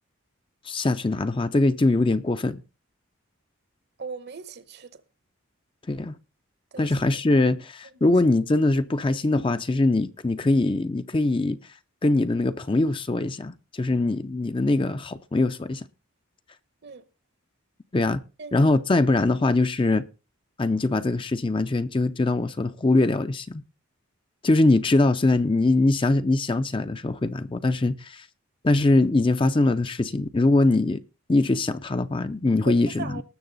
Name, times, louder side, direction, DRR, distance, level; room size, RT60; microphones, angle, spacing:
voice 1, 0.7-2.6 5.9-6.1 6.8-11.6 12.0-15.9 17.9-18.2 18.5-20.1 20.6-23.6 24.4-28.3 28.6-31.0 31.3-33.2, left 2 dB, 25° left, 0.5 m, -22 dB
voice 2, 4.0-5.0 6.7-6.9 16.8-17.0 18.4-18.7 32.7-33.2, right 4 dB, 50° right, 0.9 m, -38 dB
19.0 x 6.9 x 4.0 m
head